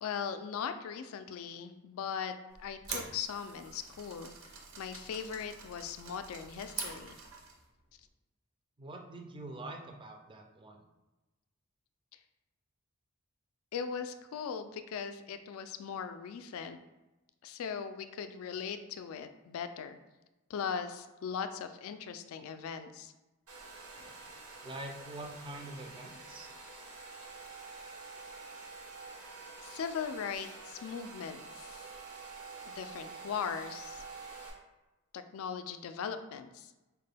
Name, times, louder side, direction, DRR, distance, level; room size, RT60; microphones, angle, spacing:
voice 1, 0.0-2.3 2.6-4.3 4.8-7.2 13.7-16.8 17.4-20.0 20.5-23.1 29.6-31.9 32.7-34.0 35.1-36.7, left 7 dB, 65° left, 10 dB, 0.3 m, -39 dB
sound 1, 2.5-7.6, right 5 dB, 60° right, 0.6 m, -45 dB
voice 2, 8.8-10.8 24.6-26.5, right 1 dB, 20° right, 3 dB, 0.4 m, -45 dB
Domestic sounds home sounds, 23.5-34.5, right 4 dB, 90° right, 1.0 m, -48 dB
4.5 x 2.2 x 3.3 m, 1.1 s
head